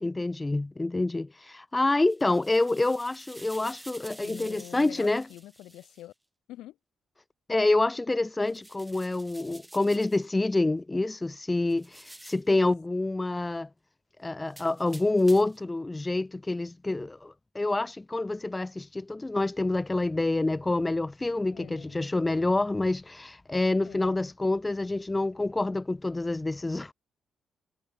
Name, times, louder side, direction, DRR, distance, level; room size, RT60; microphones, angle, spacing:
voice 1, 0.0-5.3 7.5-13.7 14.2-26.9, left 2 dB, 15° left, 0.3 m, -27 dB
sound 1, 1.9-6.1 8.4-10.3 11.7-12.6 14.5-15.7, right 1 dB, 5° right, 3.0 m, -50 dB
voice 2, 4.2-6.1 6.5-6.8 21.5-22.4 23.8-24.3, left 14 dB, 85° left, 1.4 m, -47 dB
cardioid pair, 90°, 0 cm